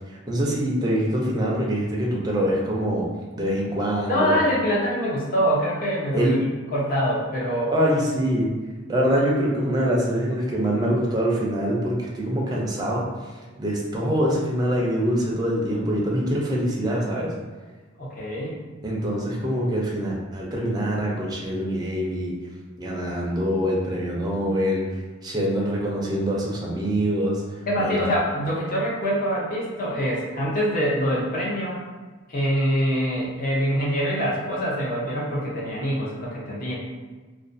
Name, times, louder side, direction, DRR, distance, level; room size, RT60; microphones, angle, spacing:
voice 1, 0.3-3.1 3.4-4.4 6.1-6.5 7.7-8.5 8.9-13.1 13.6-17.3 18.8-22.3 22.8-24.9 25.2-27.4 27.8-28.0, equal, 20° right, -3 dB, 0.4 m, -24 dB
voice 2, 4.1-7.7 18.0-18.6 27.7-31.8 32.3-36.8, equal, 45° left, -5 dB, 0.6 m, -24 dB
2.4 x 2.2 x 2.5 m, 1.4 s
head